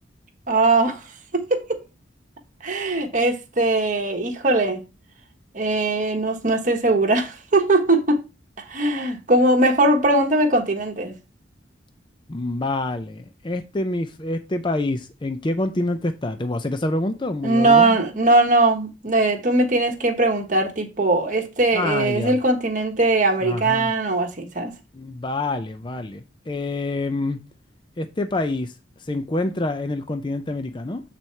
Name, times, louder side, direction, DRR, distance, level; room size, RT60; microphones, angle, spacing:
voice 1, 0.5-1.0 1.3-1.6 2.6-4.8 5.5-8.2 8.7-11.1 17.4-24.7, right 2 dB, 40° right, 1.2 m, -20 dB
voice 2, 12.3-18.0 21.7-22.4 23.4-23.9 24.9-27.4 28.0-28.7 29.0-31.0, left 2 dB, 25° left, 0.5 m, -27 dB
8.0 x 4.2 x 4.4 m
head